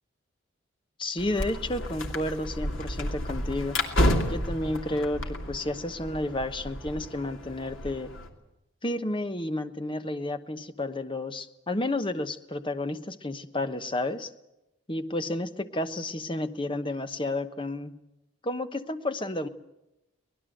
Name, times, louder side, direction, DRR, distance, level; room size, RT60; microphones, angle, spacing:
voice 1, 1.0-3.8 4.3-8.1 8.8-14.3 14.9-18.0 18.4-19.5, left 1 dB, 25° left, 9 dB, 1.0 m, -31 dB
sound 1, 1.2-8.3, left 1 dB, 70° left, 2.8 m, -31 dB
24.0 x 19.5 x 7.9 m, 0.92 s
head